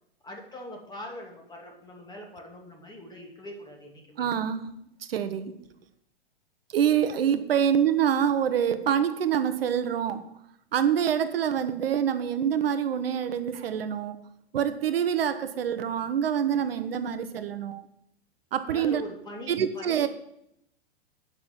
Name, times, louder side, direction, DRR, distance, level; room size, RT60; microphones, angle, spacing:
voice 1, 0.2-4.2 18.7-20.1, left 1 dB, 15° left, 0 dB, 2.6 m, -42 dB
voice 2, 4.2-4.8 5.1-5.6 6.7-10.4 10.7-14.2 14.5-17.8 18.5-19.0 19.5-20.1, right 8 dB, 75° right, 11 dB, 0.9 m, -26 dB
9.0 x 6.0 x 6.8 m, 0.76 s
hypercardioid pair, 110°, 30 cm